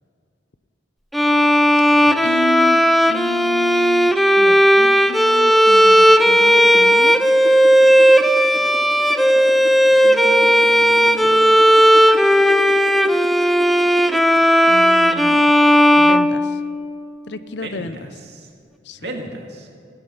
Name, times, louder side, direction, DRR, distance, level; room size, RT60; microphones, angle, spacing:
Bowed string instrument, 1.1-17.0, equal, ahead, 0.4 m, -14 dB
voice 1, 2.2-2.8 3.1-7.2 10.0-11.6 14.6-15.5 16.0-16.6 17.3-18.0 18.8-19.0, left 3 dB, 65° left, 13 dB, 0.7 m, -31 dB
sound 1, 6.2-14.5, right 2 dB, 90° right, 1.0 m, -36 dB
voice 2, 10.6-11.4 17.6-18.5 19.0-19.7, right 1 dB, 60° right, 1 dB, 2.4 m, -36 dB
16.0 x 13.0 x 5.6 m, 2.3 s
head